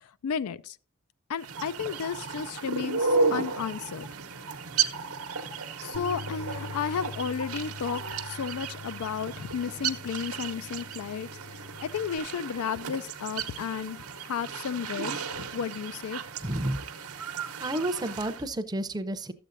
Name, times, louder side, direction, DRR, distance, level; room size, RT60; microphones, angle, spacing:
voice 1, 0.2-0.8 1.3-4.1 5.8-11.3 11.8-16.2, left 7 dB, 85° left, 0.4 m, -33 dB
sound 1, 1.4-18.4, right 4 dB, 85° right, 0.9 m, -34 dB
Bass guitar, 5.9-12.2, left 4 dB, 70° left, 0.8 m, -44 dB
voice 2, 16.4-16.8 17.2-19.3, right 1 dB, 20° right, 0.6 m, -31 dB
12.5 x 7.7 x 2.6 m
head